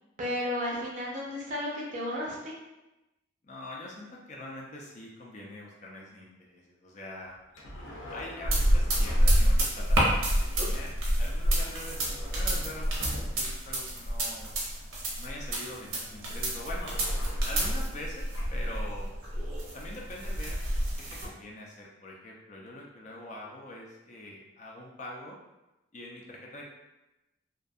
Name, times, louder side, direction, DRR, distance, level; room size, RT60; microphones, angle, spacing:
voice 1, 0.2-2.5 16.2-16.6, left 1 dB, 40° right, -4 dB, 0.5 m, -33 dB
voice 2, 3.4-7.4 8.1-14.5 15.2-16.9 17.4-18.2 18.5-19.1 19.7-20.6 21.2-25.4 25.9-26.6, left 1 dB, 35° left, -2 dB, 0.3 m, -43 dB
sound 1, 7.5-9.6 11.6-13.7 16.6-18.1 18.3-18.5, left 1 dB, 80° left, 0.6 m, -43 dB
sound 2, 8.4-21.3, equal, 90° right, 0.7 m, -28 dB
2.3 x 2.2 x 2.6 m, 0.99 s
head